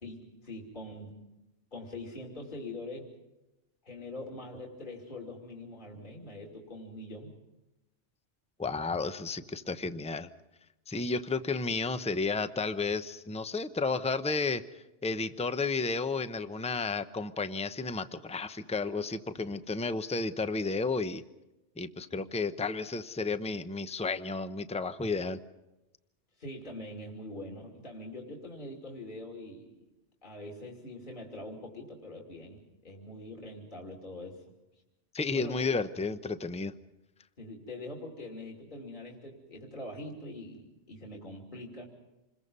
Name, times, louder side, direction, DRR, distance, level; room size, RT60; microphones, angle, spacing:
voice 1, 0.0-1.1 1.7-3.1 3.8-7.3 26.4-29.8 30.2-34.4 35.3-35.7 37.4-41.9, left 1 dB, 45° left, 0 dB, 3.1 m, -43 dB
voice 2, 8.6-10.3 10.9-21.2 21.8-25.4 35.1-36.7, left 4 dB, 5° left, 11 dB, 0.7 m, -32 dB
27.5 x 22.0 x 5.5 m, 0.98 s
omnidirectional pair, 1.2 m